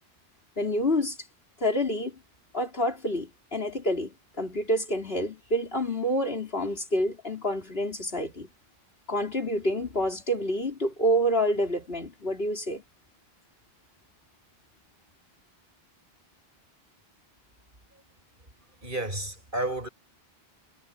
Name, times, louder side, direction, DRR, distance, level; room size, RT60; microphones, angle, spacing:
voice 1, 0.6-1.2 1.6-2.1 2.5-8.5 9.1-12.8, equal, 70° left, 4.6 m, -28 dB
voice 2, 18.8-19.9, right 1 dB, 55° right, 6.8 m, -31 dB
omnidirectional pair, 1.0 m